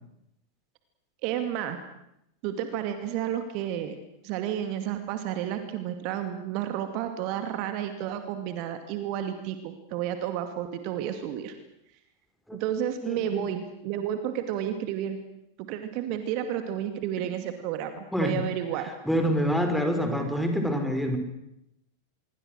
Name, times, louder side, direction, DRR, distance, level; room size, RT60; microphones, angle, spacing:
voice 1, 1.2-1.8 2.4-4.0 4.2-11.5 12.5-15.2 15.6-18.9, right 10 dB, 45° right, 8 dB, 2.3 m, -31 dB
voice 2, 13.0-13.4 18.1-18.4 19.1-21.2, equal, ahead, 5 dB, 5.0 m, -26 dB
26.0 x 23.5 x 6.4 m, 0.83 s
figure-of-eight pair, 90°, 0 cm